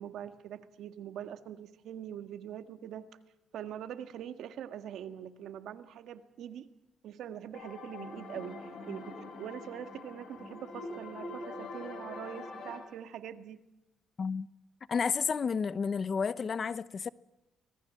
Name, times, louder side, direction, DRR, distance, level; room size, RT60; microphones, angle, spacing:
voice 1, 0.0-3.1 3.5-6.7 7.0-13.6, right 10 dB, 75° right, 1.7 m, -43 dB
sound 1, 7.5-12.8, left 2 dB, 70° left, 5.7 m, -44 dB
voice 2, 14.9-17.1, left 5 dB, 45° left, 0.8 m, -31 dB
25.0 x 19.0 x 7.6 m
cardioid pair, 90°, 0 cm